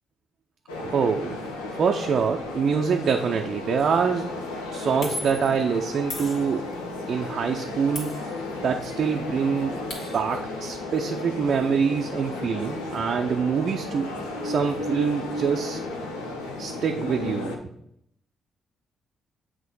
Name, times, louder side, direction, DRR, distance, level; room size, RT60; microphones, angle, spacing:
sound 1, 0.7-17.6, left 2 dB, 85° left, 0.7 m, -34 dB
voice 1, 0.9-1.4 1.8-4.2 4.7-6.7 7.1-8.1 8.6-14.1 14.4-15.8 16.6-17.5, right 6 dB, 55° right, 3 dB, 0.5 m, -25 dB
sound 2, 3.8-4.0 5.0-5.6 6.1-6.9 7.9-8.8 9.1-9.2 9.5-10.4, left 1 dB, 55° left, 1.8 m, -38 dB
7.5 x 2.8 x 5.3 m, 0.72 s
hypercardioid pair, 45°, 0 cm